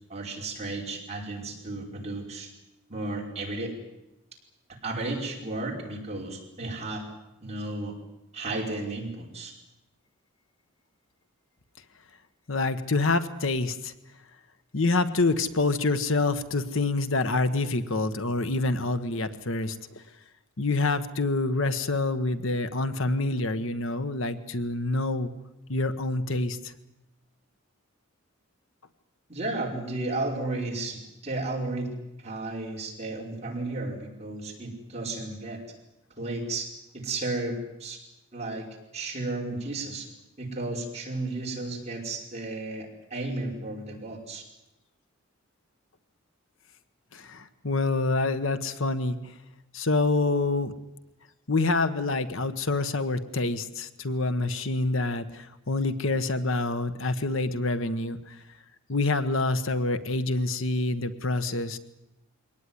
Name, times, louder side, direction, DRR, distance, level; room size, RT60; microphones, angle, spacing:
voice 1, 0.1-2.5 2.9-3.8 4.8-7.0 7.4-8.0 8.3-9.5 29.3-35.6 36.2-36.7 36.9-38.0 38.3-38.7 38.9-40.1 40.4-44.4, right 2 dB, 30° right, -1 dB, 5.3 m, -33 dB
voice 2, 12.5-13.9 14.7-20.0 20.6-25.3 25.7-26.7 47.1-49.3 49.7-50.7 51.5-58.4 58.9-61.8, left 2 dB, 65° left, 11 dB, 1.3 m, -27 dB
23.0 x 18.5 x 9.7 m, 0.91 s
head